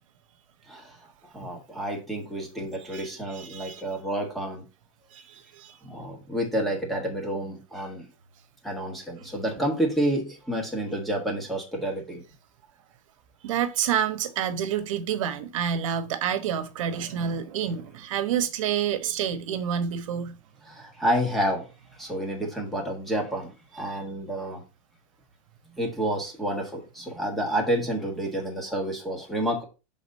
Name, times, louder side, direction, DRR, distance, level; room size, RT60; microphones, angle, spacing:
voice 1, 0.7-1.0 1.3-4.6 5.8-8.1 8.6-12.2 20.6-24.6 25.7-29.6, right 1 dB, ahead, 1.4 m, -29 dB
voice 2, 2.9-3.8 5.1-5.8 13.4-20.4, right 8 dB, 65° right, 1.1 m, -28 dB
5.9 x 4.0 x 5.4 m
supercardioid pair, 170°, 18 cm